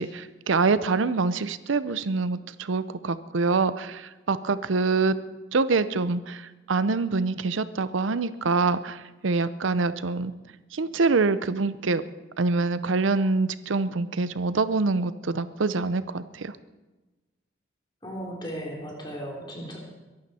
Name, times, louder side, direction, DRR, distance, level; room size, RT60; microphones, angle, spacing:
voice 1, 0.0-5.2 5.5-10.3 10.7-12.0 12.4-16.6, right 4 dB, 85° right, 14 dB, 0.6 m, -25 dB
voice 2, 18.0-19.8, equal, 25° left, -1 dB, 3.5 m, -36 dB
22.5 x 11.5 x 4.3 m, 1.2 s
head